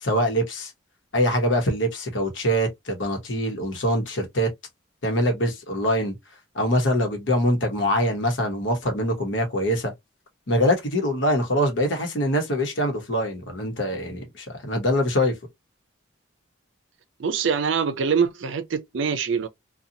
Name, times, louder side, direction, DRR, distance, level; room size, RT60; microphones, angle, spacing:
voice 1, 0.0-0.7 1.1-4.5 5.0-6.1 6.5-9.9 10.5-15.4, equal, 65° left, 1.0 m, -24 dB
voice 2, 17.2-19.5, right 6 dB, 70° right, 0.5 m, -24 dB
2.8 x 2.3 x 2.5 m
head